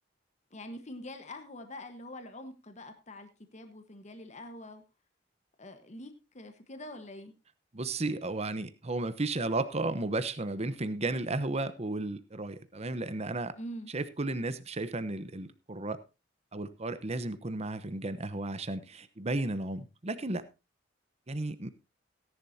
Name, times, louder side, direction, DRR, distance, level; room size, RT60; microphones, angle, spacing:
voice 1, 0.5-4.8 5.6-7.3 13.6-13.9, left 1 dB, 40° left, 7 dB, 1.3 m, -45 dB
voice 2, 7.7-13.5 13.9-16.0 16.5-20.5 21.3-21.7, right 2 dB, 35° right, 13 dB, 1.0 m, -34 dB
17.0 x 11.0 x 2.8 m, 0.27 s
head